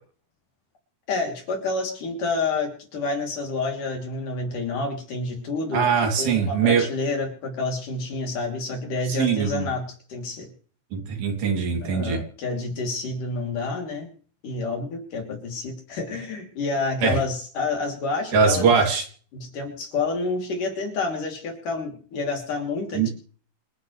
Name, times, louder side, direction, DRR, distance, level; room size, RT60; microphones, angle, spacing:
voice 1, 1.1-5.9 6.2-10.5 11.8-14.1 14.4-18.7 19.3-23.1, left 3 dB, 60° left, 2 dB, 4.5 m, -29 dB
voice 2, 5.7-6.8 9.1-9.7 10.9-12.2 17.0-17.2 18.3-19.0 22.9-23.1, right 6 dB, 70° right, 2 dB, 4.6 m, -21 dB
27.5 x 10.5 x 3.3 m, 0.43 s
omnidirectional pair, 4.4 m